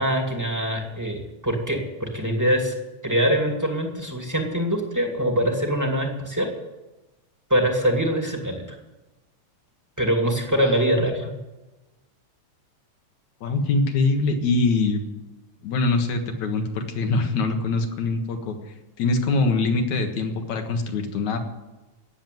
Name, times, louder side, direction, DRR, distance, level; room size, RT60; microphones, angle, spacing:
voice 1, 0.0-2.7 3.0-6.5 7.5-8.6 10.0-11.2, equal, 5° right, 2 dB, 1.7 m, -23 dB
voice 2, 10.6-11.1 13.4-15.0 15.6-18.6 19.0-21.4, left 3 dB, 75° left, 5 dB, 2.9 m, -23 dB
17.5 x 7.5 x 9.3 m, 1.1 s
omnidirectional pair, 3.4 m